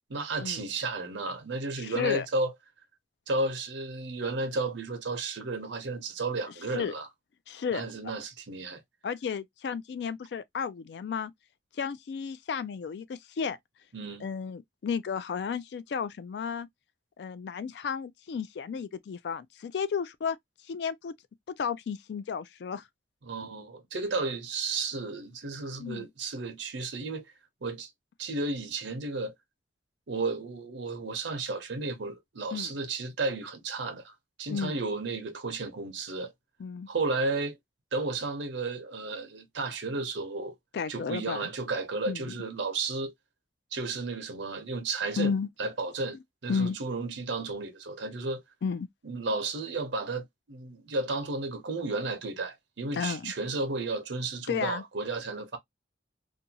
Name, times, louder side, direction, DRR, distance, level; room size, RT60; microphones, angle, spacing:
voice 1, 0.1-2.5 3.3-7.1 7.7-8.8 13.9-14.3 23.2-27.2 27.6-27.9 28.2-29.3 30.1-34.1 34.4-36.3 36.9-37.6 37.9-40.5 40.9-43.1 43.7-46.2 46.4-48.4 49.0-55.6, right 3 dB, 85° right, 0.7 m, -33 dB
voice 2, 1.8-2.3 6.7-6.9 7.5-7.8 9.0-11.3 11.8-13.6 14.2-16.7 17.2-20.4 20.7-21.1 21.5-22.8 25.8-26.1 32.5-32.7 34.5-34.8 36.6-36.9 40.7-41.5 42.1-42.3 45.2-45.5 46.5-46.8 48.6-48.9 52.9-53.3 54.5-54.8, left 6 dB, 65° left, 0.3 m, -33 dB
2.6 x 2.3 x 2.7 m
head